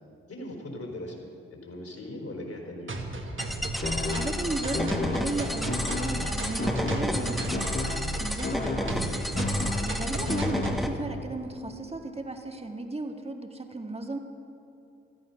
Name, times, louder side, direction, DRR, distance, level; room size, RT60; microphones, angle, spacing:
voice 1, 0.3-2.9, left 1 dB, 45° left, 1 dB, 4.1 m, -39 dB
sound 1, 2.9-10.9, right 2 dB, 40° right, 2.1 m, -36 dB
sound 2, 3.4-10.9, equal, ahead, 1.8 m, -32 dB
sound 3, 3.8-11.2, left 3 dB, 30° left, 1.6 m, -33 dB
voice 2, 4.1-7.7 8.2-9.4 9.8-14.2, right 2 dB, 20° right, 4 dB, 1.8 m, -35 dB
15.0 x 13.5 x 5.7 m, 2.7 s
hypercardioid pair, 40°, 32 cm